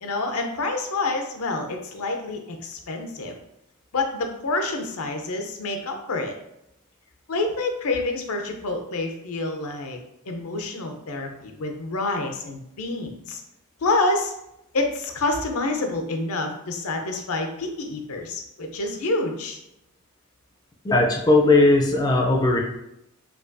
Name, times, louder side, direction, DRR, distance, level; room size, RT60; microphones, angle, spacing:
voice 1, 0.0-3.4 3.9-6.3 7.3-10.0 10.3-13.4 13.8-14.3 14.7-19.6, left 2 dB, 75° left, 4 dB, 0.6 m, -27 dB
voice 2, 20.8-22.6, left 2 dB, 20° left, 0 dB, 0.4 m, -18 dB
4.7 x 2.3 x 2.5 m, 0.82 s
head